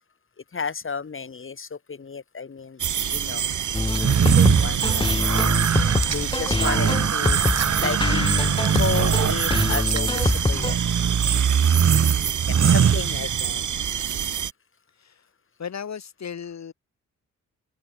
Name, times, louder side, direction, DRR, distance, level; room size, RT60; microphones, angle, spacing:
voice 1, 0.5-2.8 3.1-3.5 4.2-5.1 6.1-7.4 7.8-8.2 8.7-11.1 12.0-12.1 12.5-13.6, left 5 dB, 40° left, 7.2 m, -32 dB
sound 1, 2.8-14.5, right 9 dB, 75° right, 3.7 m, -27 dB
sound 2, 3.7-10.7, left 2 dB, 15° left, 1.7 m, -25 dB
sound 3, 3.9-13.6, right 7 dB, 55° right, 2.3 m, -22 dB
voice 2, 11.8-12.8 14.1-14.4 15.0-15.2 15.6-16.7, left 7 dB, 60° left, 5.5 m, -38 dB
open air
wide cardioid pair, 115°, 31 cm